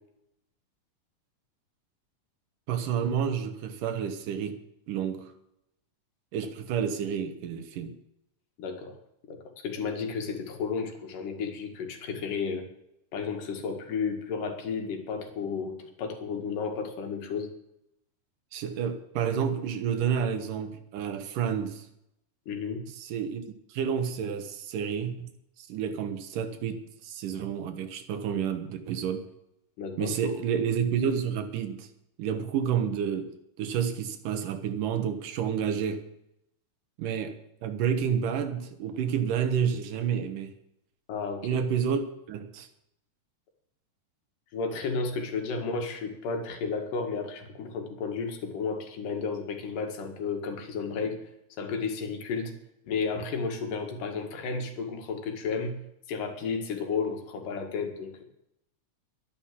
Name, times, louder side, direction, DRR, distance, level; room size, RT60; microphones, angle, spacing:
voice 1, 2.7-4.6 4.9-5.3 6.3-7.9 18.5-21.9 23.0-23.4 23.7-25.3 25.6-29.3 30.0-31.9 32.2-33.3 33.6-36.0 37.0-37.4 37.6-40.5 41.4-42.7, right 7 dB, 85° right, 8 dB, 3.0 m, -30 dB
voice 2, 8.6-8.9 9.3-12.7 13.1-17.5 22.5-22.8 29.8-30.1 41.1-41.6 44.5-51.3 51.6-52.5 52.9-55.7 56.1-58.2, left 5 dB, 90° left, 4 dB, 3.5 m, -32 dB
12.0 x 11.0 x 7.5 m, 0.79 s
omnidirectional pair, 3.6 m